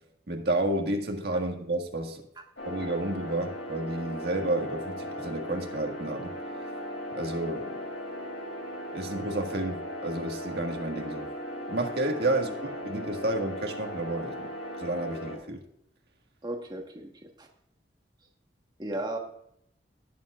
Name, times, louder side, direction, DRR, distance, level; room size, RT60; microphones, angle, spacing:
voice 1, 0.3-2.2 2.6-6.4 7.1-7.8 8.9-11.3 11.7-14.5 14.8-15.6, right 2 dB, 65° right, 3 dB, 1.7 m, -31 dB
sound 1, 2.6-15.4, equal, 85° left, 3.3 m, -37 dB
voice 2, 16.4-17.1 17.4-17.5 18.8-19.2, right 1 dB, 25° right, 2 dB, 1.3 m, -35 dB
18.0 x 7.3 x 2.4 m, 0.74 s
head